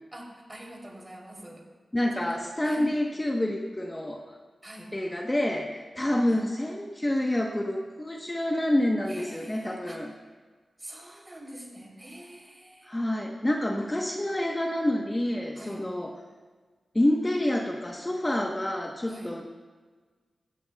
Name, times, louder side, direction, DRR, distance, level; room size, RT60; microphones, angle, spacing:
voice 1, 0.1-1.7 2.2-2.9 4.6-4.9 6.3-6.5 9.1-10.2 10.8-12.9 15.5-15.9 19.1-19.3, right 1 dB, 20° right, -1 dB, 3.1 m, -44 dB
voice 2, 1.9-4.4 4.9-10.1 12.9-16.1 16.9-19.4, left 1 dB, 20° left, 0 dB, 1.0 m, -28 dB
17.0 x 16.0 x 2.3 m, 1.4 s
wide cardioid pair, 85°, 0 cm